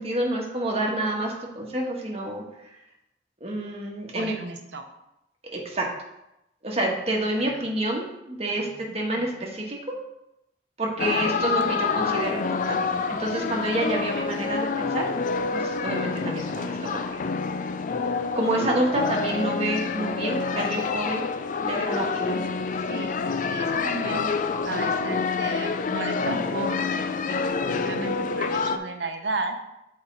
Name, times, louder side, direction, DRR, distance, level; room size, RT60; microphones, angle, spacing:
voice 1, 0.0-2.4 3.4-4.3 5.5-5.8 6.6-8.7 8.9-9.8 10.8-12.8 13.2-15.0 15.5-17.0 18.3-21.2 21.6-22.4, right 1 dB, 35° right, -1 dB, 1.3 m, -28 dB
voice 2, 4.1-4.8 7.4-7.7 8.6-9.5 11.0-11.4 14.4-14.6 22.9-24.3 24.7-29.6, right 2 dB, 75° right, 6 dB, 0.8 m, -35 dB
sound 1, 11.0-28.8, left 4 dB, 45° left, 0.4 m, -27 dB
7.3 x 4.3 x 3.9 m, 0.87 s
head